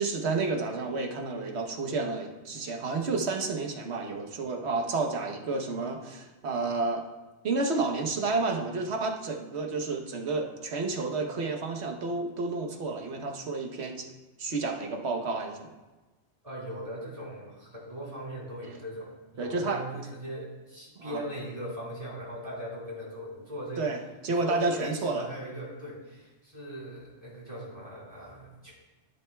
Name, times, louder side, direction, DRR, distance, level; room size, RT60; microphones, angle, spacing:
voice 1, 0.0-7.0 7.4-14.1 14.4-15.7 19.4-19.8 21.0-21.2 23.8-24.0 24.2-25.3, right 3 dB, 70° right, 3 dB, 1.2 m, -30 dB
voice 2, 16.4-23.9 24.3-28.7, equal, 30° right, -6 dB, 3.8 m, -39 dB
12.0 x 10.5 x 2.3 m, 1.2 s
omnidirectional pair, 1.2 m